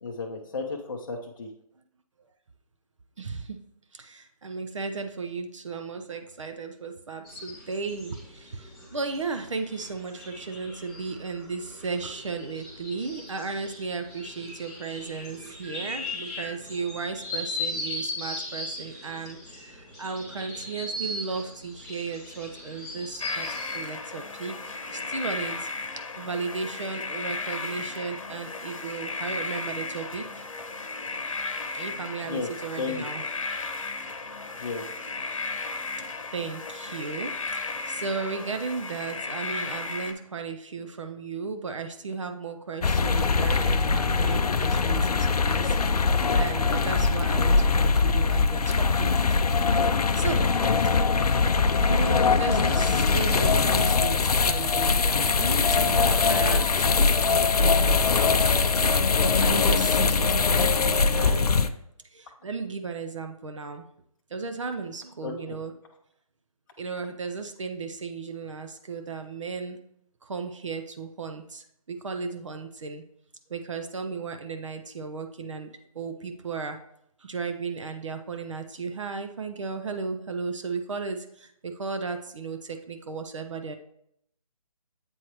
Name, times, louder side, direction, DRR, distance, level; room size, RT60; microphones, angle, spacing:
voice 1, 0.0-1.5 32.2-32.5 32.8-33.1 34.6-34.8 65.2-65.6, left 4 dB, 35° left, 0 dB, 0.6 m, -33 dB
voice 2, 3.2-3.6 3.9-25.7 26.2-30.4 31.7-33.2 36.3-49.4 49.8-50.5 51.9-58.4 59.2-61.8 62.1-63.9 64.3-65.7 66.8-69.8 70.2-73.0 73.5-76.8 77.2-83.8, right 4 dB, 55° right, 6 dB, 0.6 m, -35 dB
sound 1, 7.2-23.8, left 2 dB, 5° left, 1.9 m, -38 dB
sound 2, 23.2-40.1, left 4 dB, 60° left, 0.9 m, -35 dB
sound 3, 42.8-61.7, left 4 dB, 80° left, 0.5 m, -22 dB
7.9 x 4.5 x 3.0 m, 0.72 s
figure-of-eight pair, 160°, 19 cm